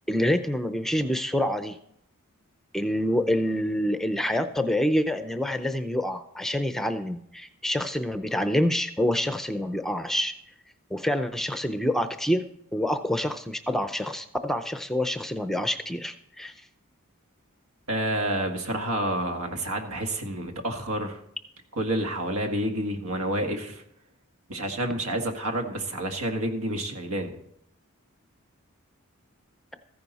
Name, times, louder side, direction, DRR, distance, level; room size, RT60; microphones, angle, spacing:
voice 1, 0.1-1.8 2.7-10.3 10.9-16.5, equal, ahead, 9 dB, 0.5 m, -27 dB
voice 2, 17.9-21.2 21.8-23.8 24.5-27.4, right 1 dB, 85° right, 4 dB, 1.7 m, -29 dB
14.5 x 10.5 x 4.1 m, 0.71 s
head